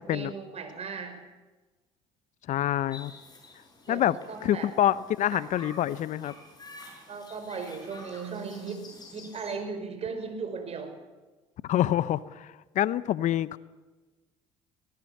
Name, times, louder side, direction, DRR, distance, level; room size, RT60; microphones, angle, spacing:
voice 1, 0.1-1.2 3.9-4.7 5.3-5.4 7.1-10.9, right 5 dB, 45° right, 6 dB, 5.5 m, -37 dB
voice 2, 2.5-3.1 3.9-4.2 4.4-6.3 11.7-13.6, left 12 dB, 60° left, 18 dB, 0.8 m, -26 dB
sound 1, 2.9-9.6, left 2 dB, 30° left, 7.7 m, -49 dB
18.0 x 18.0 x 8.5 m, 1.2 s
hypercardioid pair, 60°, 14 cm